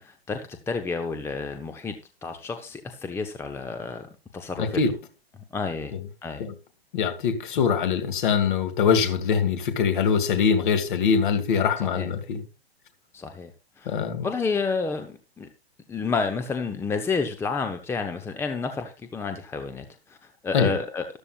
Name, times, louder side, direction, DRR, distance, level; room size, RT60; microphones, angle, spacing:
voice 1, 0.0-1.9 2.2-4.8 5.5-5.9 6.2-6.4 11.8-12.1 13.1-13.5 13.8-14.0 14.2-15.5 15.9-19.8 20.4-21.0, left 4 dB, 5° left, 0.9 m, -30 dB
voice 2, 4.6-4.9 5.9-6.0 6.4-6.5 6.9-12.4 13.9-14.3 20.5-20.8, left 6 dB, 50° left, 2.5 m, -23 dB
13.5 x 12.5 x 2.4 m
figure-of-eight pair, 115°, 32 cm